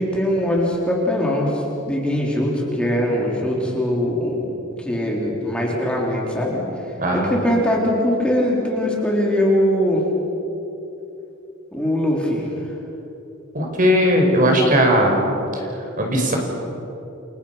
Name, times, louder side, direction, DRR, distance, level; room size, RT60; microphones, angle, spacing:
voice 1, 0.0-4.4 4.8-6.6 7.1-10.1 11.7-12.5, equal, 5° left, -3 dB, 3.8 m, -21 dB
voice 2, 7.0-7.3 13.5-15.2 15.5-16.4, equal, 40° right, 1 dB, 5.0 m, -18 dB
30.0 x 26.5 x 5.8 m, 3.0 s
head